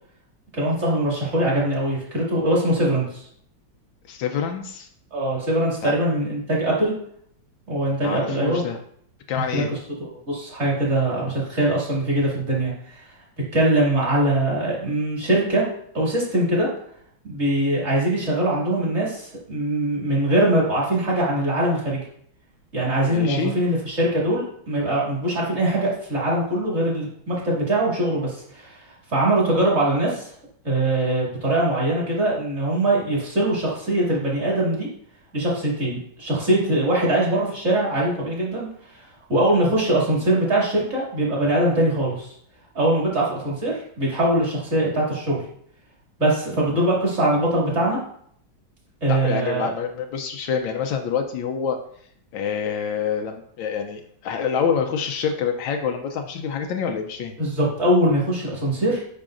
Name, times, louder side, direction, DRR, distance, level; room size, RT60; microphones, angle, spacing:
voice 1, 0.5-3.2 5.1-6.9 7.7-8.6 9.5-9.6 10.0-13.1 13.5-15.7 15.9-16.7 17.2-22.0 22.7-28.8 29.1-30.3 30.6-34.9 35.3-39.0 39.3-42.3 42.7-45.4 46.2-48.0 49.0-49.7 57.4-59.0, right 1 dB, 35° right, -5 dB, 2.5 m, -22 dB
voice 2, 4.1-4.9 5.8-5.9 8.0-8.8 9.3-9.7 23.1-23.5 49.1-51.8 52.3-57.3, left 7 dB, 80° left, 4 dB, 1.4 m, -26 dB
8.5 x 5.7 x 2.5 m, 0.66 s
omnidirectional pair, 2.1 m